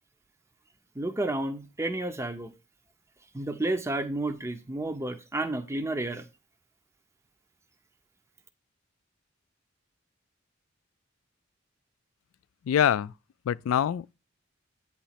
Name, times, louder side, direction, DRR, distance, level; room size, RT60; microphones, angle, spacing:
voice 1, 1.0-2.5 3.3-6.3, right 2 dB, 15° right, 0.6 m, -31 dB
voice 2, 12.7-13.1 13.5-14.1, left 9 dB, 90° left, 0.3 m, -24 dB
9.0 x 3.0 x 5.8 m
head